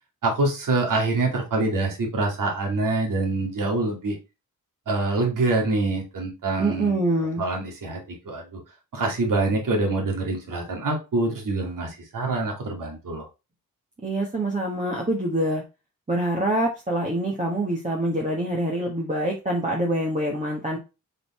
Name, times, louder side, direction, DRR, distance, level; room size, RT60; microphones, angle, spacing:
voice 1, 0.2-4.2 4.9-7.0 7.4-8.6 8.9-13.3, right 2 dB, 65° right, 1 dB, 2.4 m, -25 dB
voice 2, 6.6-7.4 14.0-15.6 16.1-20.8, right 1 dB, 20° right, -2 dB, 1.5 m, -25 dB
5.2 x 4.2 x 4.3 m, 0.28 s
cardioid pair, 75°, 34 cm